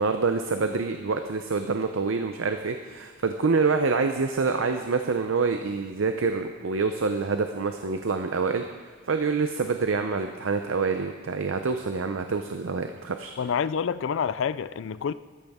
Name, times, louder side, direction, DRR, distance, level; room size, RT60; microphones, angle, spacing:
voice 1, 0.0-8.6 9.1-13.3, right 4 dB, 80° right, 6 dB, 0.6 m, -26 dB
voice 2, 13.4-15.1, left 7 dB, 65° left, 16 dB, 0.4 m, -27 dB
13.5 x 13.0 x 3.6 m, 1.4 s
head